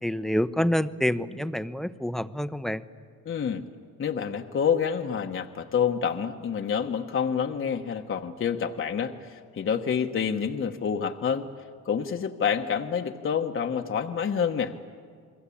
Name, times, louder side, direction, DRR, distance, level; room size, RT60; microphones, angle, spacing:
voice 1, 0.0-2.8, left 1 dB, ahead, 12 dB, 0.8 m, -27 dB
voice 2, 3.2-3.6 4.0-11.5 11.8-14.7, left 7 dB, 40° left, 4 dB, 1.2 m, -28 dB
29.0 x 21.5 x 8.6 m, 2.1 s
cardioid pair, 100°, 33 cm